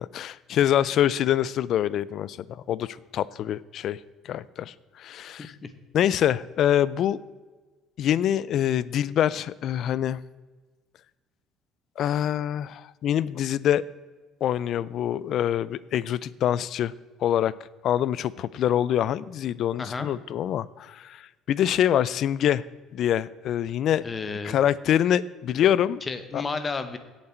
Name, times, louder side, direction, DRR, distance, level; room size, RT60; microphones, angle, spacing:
voice 1, 0.0-2.4 2.7-4.0 4.2-5.5 5.9-7.2 8.0-10.2 12.0-13.8 14.4-16.9 17.2-17.5 17.8-22.6 22.9-24.0 24.4-26.0, left 10 dB, 45° left, 19 dB, 0.4 m, -25 dB
voice 2, 5.4-5.7 19.8-20.1 24.0-24.6 26.0-27.0, left 4 dB, 20° left, 10 dB, 0.8 m, -32 dB
17.0 x 7.3 x 4.4 m, 1.3 s
cardioid pair, 180°, 0 cm